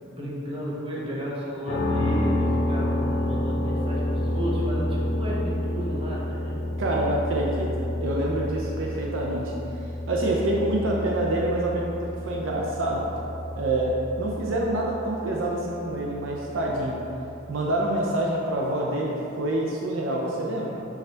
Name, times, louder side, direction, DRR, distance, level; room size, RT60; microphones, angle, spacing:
voice 1, 0.0-6.6, equal, 25° right, -6 dB, 0.8 m, -33 dB
sound 1, 1.7-17.5, left 1 dB, 45° left, 0.6 m, -29 dB
voice 2, 6.8-9.5 10.1-13.1 13.6-17.0 17.5-20.8, right 1 dB, 65° right, -2 dB, 0.5 m, -26 dB
6.6 x 2.4 x 3.3 m, 2.9 s
head